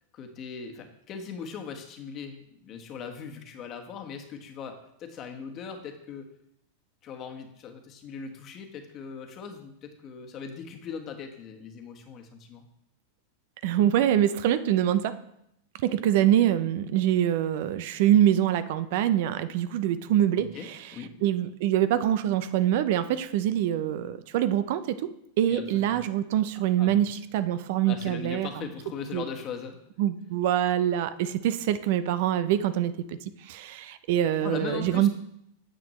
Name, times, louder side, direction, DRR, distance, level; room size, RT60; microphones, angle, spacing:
voice 1, 0.1-6.3 7.0-12.6 20.4-21.1 25.5-26.0 26.8-27.0 27.8-29.8 34.4-35.1, left 6 dB, 40° left, 3 dB, 1.3 m, -39 dB
voice 2, 13.6-15.2 15.8-20.8 21.2-25.0 25.4-28.5 29.1-29.2 30.0-33.2 33.4-35.1, right 11 dB, 60° right, 13 dB, 0.5 m, -24 dB
9.0 x 7.6 x 3.1 m, 0.78 s
hypercardioid pair, 110°, 0 cm